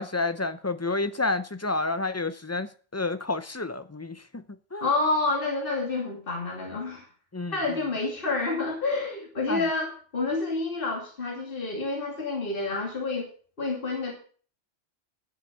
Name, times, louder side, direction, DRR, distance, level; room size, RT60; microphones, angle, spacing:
voice 1, 0.0-4.4 4.7-4.9 7.3-7.6 9.5-9.6, left 3 dB, 20° left, 0.4 m, -30 dB
voice 2, 4.8-7.0 7.5-13.3 13.6-14.1, left 3 dB, 45° left, 2.7 m, -28 dB
11.5 x 6.9 x 7.4 m
omnidirectional pair, 1.2 m